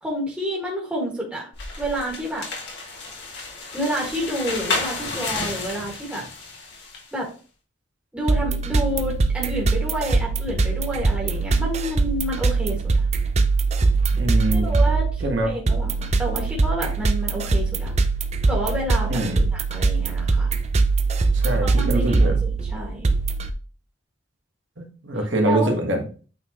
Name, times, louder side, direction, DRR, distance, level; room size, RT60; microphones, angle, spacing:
voice 1, 0.0-1.5 1.8-2.5 3.7-6.3 7.1-7.3 8.1-13.0 14.5-17.9 18.5-20.5 21.6-23.1 25.4-25.7, right 1 dB, 5° right, -4 dB, 1.9 m, -29 dB
sound 1, 1.5-7.1, left 3 dB, 60° left, 2.1 m, -31 dB
sound 2, 8.3-23.5, right 3 dB, 35° right, 0.5 m, -22 dB
voice 2, 14.2-14.7 15.2-15.5 19.1-19.4 21.3-22.3 24.8-26.0, right 1 dB, 70° right, 3 dB, 1.5 m, -24 dB
8.6 x 4.0 x 3.0 m, 0.37 s
head